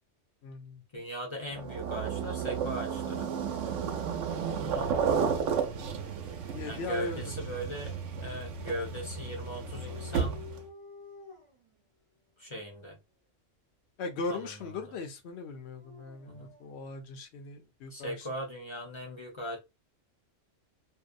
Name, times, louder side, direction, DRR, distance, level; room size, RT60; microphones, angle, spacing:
voice 1, 0.4-0.8 6.5-7.2 14.0-18.3, left 3 dB, 65° left, 0.8 m, -38 dB
voice 2, 0.9-3.3 4.5-5.1 6.6-10.4 12.4-13.0 14.3-14.8 16.3-16.5 17.9-19.6, equal, 30° left, 0.6 m, -39 dB
sound 1, 1.5-10.6, right 6 dB, 85° right, 1.0 m, -33 dB
Dog, 1.7-3.9 4.5-5.3 9.4-11.7 12.5-12.9 15.5-16.8, right 1 dB, 30° right, 0.9 m, -51 dB
2.7 x 2.1 x 2.4 m
omnidirectional pair, 1.3 m